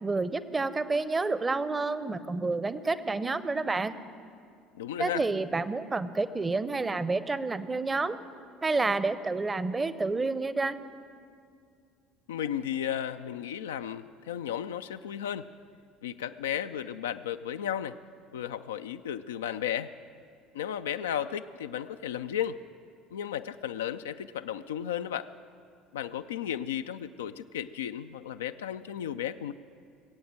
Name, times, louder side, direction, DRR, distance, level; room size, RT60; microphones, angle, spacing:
voice 1, 0.0-4.0 5.0-8.2 8.6-10.8, right 3 dB, 20° right, 15 dB, 0.7 m, -29 dB
voice 2, 4.7-5.3 12.3-15.5 16.0-18.0 18.3-19.9 20.5-22.6 23.1-25.3 25.9-29.5, left 10 dB, 70° left, 9 dB, 0.4 m, -34 dB
21.5 x 8.5 x 7.6 m, 2.3 s
figure-of-eight pair, 60°, 0 cm